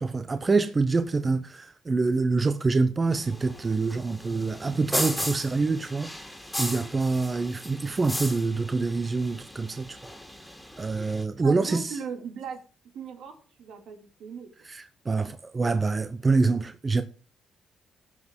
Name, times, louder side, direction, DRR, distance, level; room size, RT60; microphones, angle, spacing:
voice 1, 0.0-6.1 6.6-10.0 10.8-11.9 14.7-17.0, right 3 dB, 30° right, 0.7 m, -26 dB
sound 1, 3.1-11.2, left 1 dB, 5° left, 2.5 m, -36 dB
voice 2, 11.4-12.6 12.9-14.7, right 6 dB, 80° right, 2.3 m, -38 dB
17.0 x 6.1 x 3.6 m
cardioid pair, 90°, 0 cm